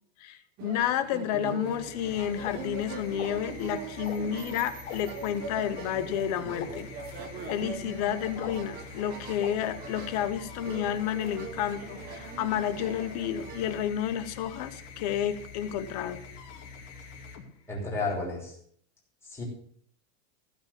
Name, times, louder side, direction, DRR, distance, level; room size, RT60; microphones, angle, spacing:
voice 1, 0.2-6.9 7.5-16.2, left 10 dB, 30° left, 12 dB, 0.6 m, -31 dB
sound 1, 0.6-13.8, right 5 dB, 20° right, 1.0 m, -42 dB
sound 2, 1.5-18.0, left 5 dB, 60° left, 2.6 m, -46 dB
sound 3, 2.4-2.5 3.2-3.3 4.0-4.2 4.9-5.0 5.8-5.9 6.6-6.7 7.5-7.6 8.4-8.5 9.4-9.5, left 9 dB, 75° left, 3.2 m, -38 dB
voice 2, 17.7-18.6 19.2-19.4, left 3 dB, 5° left, -4 dB, 3.1 m, -32 dB
15.0 x 5.8 x 7.0 m, 0.62 s
supercardioid pair, 180°, 40 cm